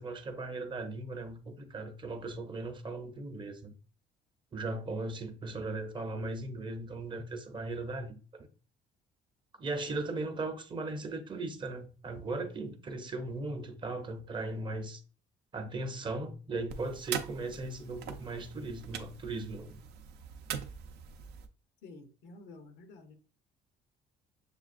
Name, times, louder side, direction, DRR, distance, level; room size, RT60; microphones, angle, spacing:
voice 1, 0.0-3.7 4.5-8.5 9.6-15.0 15.5-19.8, right 2 dB, 30° right, 0.6 m, -38 dB
sound 1, 16.7-21.5, right 8 dB, 80° right, 0.5 m, -42 dB
voice 2, 21.8-23.1, left 3 dB, 85° left, 0.8 m, -51 dB
6.7 x 2.4 x 2.5 m
cardioid pair, 110°, 17 cm